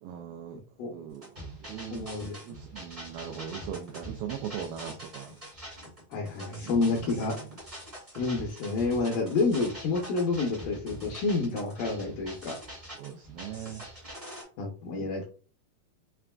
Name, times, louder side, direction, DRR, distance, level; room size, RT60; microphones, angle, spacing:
voice 1, 0.0-0.6 0.9-5.4 6.6-7.3 13.0-13.9 14.9-15.1, right 9 dB, 85° right, 4 dB, 2.0 m, -40 dB
sound 1, 1.1-14.4, right 1 dB, 30° right, 0.7 m, -44 dB
voice 2, 1.9-2.4 6.1-7.3 8.2-12.6 14.6-15.2, left 3 dB, 80° left, 0 dB, 2.0 m, -29 dB
5.9 x 2.4 x 2.2 m, 0.38 s
omnidirectional pair, 4.5 m